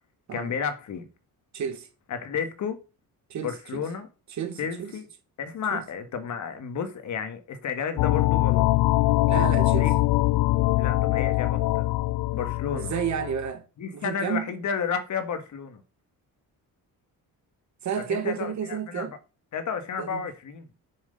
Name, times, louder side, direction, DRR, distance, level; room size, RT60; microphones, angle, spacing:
voice 1, 0.3-1.1 2.1-2.8 3.4-4.1 4.6-5.1 5.4-8.7 9.7-9.9 10.8-11.8 12.3-12.9 13.8-15.8 17.9-19.1 19.5-20.6, left 6 dB, 50° left, 1.6 m, -32 dB
voice 2, 1.5-1.9 3.3-3.8 4.3-4.9 5.7-5.8 9.3-9.9 12.8-13.6 13.9-14.5 17.8-19.1 20.0-20.2, right 7 dB, 50° right, 1.6 m, -31 dB
sound 1, 8.0-13.5, left 19 dB, 90° left, 0.5 m, -23 dB
7.2 x 6.3 x 5.2 m
cardioid pair, 170°, 36 cm